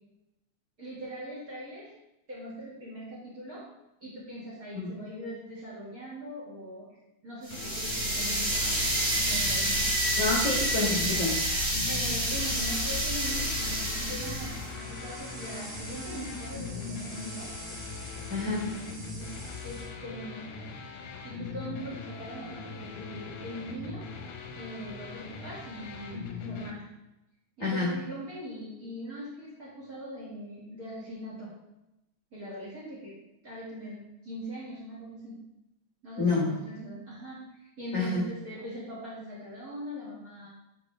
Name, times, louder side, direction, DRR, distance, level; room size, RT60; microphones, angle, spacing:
voice 1, 0.8-1.9 2.3-3.6 4.0-6.9 7.2-9.9 11.8-17.5 18.5-18.7 19.0-19.3 19.6-20.5 21.2-24.1 24.5-26.8 27.6-31.5 32.3-33.1 33.4-35.4 36.0-40.5, equal, 40° right, -6 dB, 1.4 m, -41 dB
sound 1, 7.4-14.6, right 1 dB, 25° right, 2.3 m, -28 dB
sound 2, 7.5-26.7, left 4 dB, 75° left, 1.7 m, -41 dB
sound 3, 9.8-19.9, left 2 dB, 60° right, 2.3 m, -44 dB
voice 2, 10.2-11.3 18.3-18.6 27.6-27.9 36.2-36.5 37.9-38.2, left 3 dB, 45° left, -6 dB, 0.9 m, -28 dB
7.2 x 4.8 x 3.0 m, 0.90 s
omnidirectional pair, 3.3 m